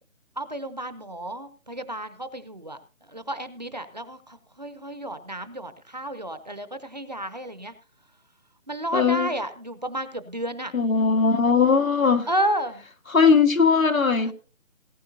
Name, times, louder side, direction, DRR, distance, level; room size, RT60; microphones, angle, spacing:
voice 1, 0.4-2.8 3.1-7.7 8.7-10.7 12.3-12.9 14.2-14.3, right 1 dB, 35° right, 0.8 m, -31 dB
voice 2, 8.9-9.3 10.7-12.3 13.1-14.3, left 5 dB, 90° left, 1.9 m, -19 dB
19.0 x 9.6 x 2.8 m
figure-of-eight pair, 175°, 40 cm